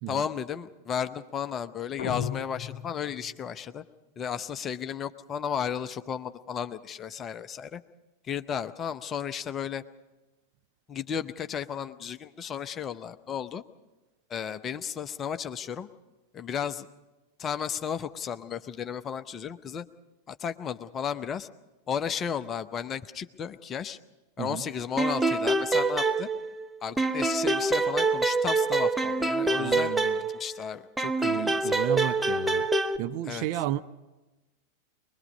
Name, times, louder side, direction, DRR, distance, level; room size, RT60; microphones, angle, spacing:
voice 1, 0.1-3.8 4.2-7.8 8.2-9.8 10.9-13.6 14.3-15.9 16.3-16.9 17.4-19.8 20.3-21.5 21.9-24.0 24.4-26.3 26.8-30.0 30.4-31.8 33.3-33.5, left 8 dB, 25° left, 0.7 m, -34 dB
sound 1, 2.0-3.4, left 8 dB, 55° left, 0.8 m, -35 dB
sound 2, 25.0-26.7 27.0-30.6 31.0-33.0, right 3 dB, 5° right, 0.7 m, -26 dB
voice 2, 29.6-30.2 31.2-32.7 33.0-33.8, right 13 dB, 45° right, 0.6 m, -33 dB
22.5 x 21.5 x 5.3 m
figure-of-eight pair, 90°, 0 cm